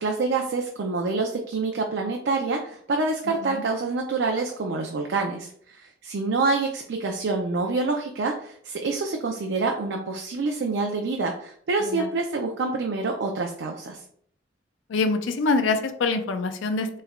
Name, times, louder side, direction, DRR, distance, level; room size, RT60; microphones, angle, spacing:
voice 1, 0.0-14.0, right 3 dB, 70° right, 2 dB, 0.4 m, -27 dB
voice 2, 14.9-16.9, left 3 dB, 85° left, 8 dB, 0.4 m, -25 dB
3.1 x 2.2 x 3.5 m, 0.62 s
head